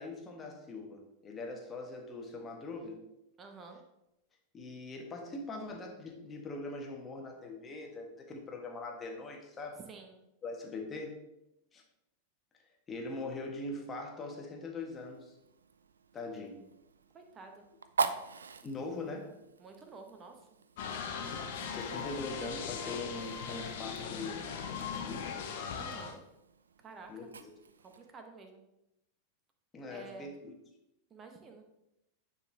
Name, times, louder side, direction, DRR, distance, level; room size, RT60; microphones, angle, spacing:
voice 1, 0.0-3.1 4.5-9.8 10.4-11.3 11.7-11.8 12.9-15.4 16.1-16.6 18.6-19.4 21.6-25.4 27.1-27.5 29.7-30.5, left 2 dB, 20° left, 2 dB, 1.4 m, -42 dB
voice 2, 3.4-3.8 9.9-10.2 17.1-17.6 19.6-20.5 25.7-26.2 26.8-27.3 27.8-28.6 29.9-30.3 31.1-31.6, right 4 dB, 25° right, 4 dB, 1.1 m, -50 dB
Fire, 14.8-28.1, right 5 dB, 70° right, 0.4 m, -43 dB
sound 1, 20.8-26.2, left 6 dB, 55° left, 0.9 m, -39 dB
9.6 x 4.2 x 3.5 m, 0.87 s
figure-of-eight pair, 90°, 0 cm